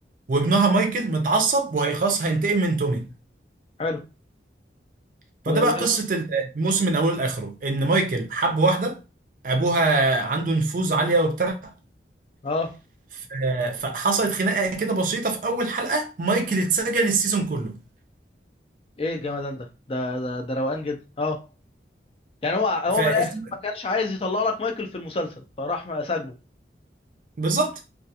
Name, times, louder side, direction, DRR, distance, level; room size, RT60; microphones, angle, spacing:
voice 1, 0.3-3.1 5.5-9.0 9.4-11.7 13.3-17.8 23.0-23.2 27.4-27.8, right 3 dB, 45° right, 0.4 m, -23 dB
voice 2, 5.5-5.9 12.4-12.7 19.0-21.4 22.4-23.3 23.6-26.3, left 3 dB, 30° left, 0.4 m, -27 dB
2.3 x 2.3 x 2.7 m
head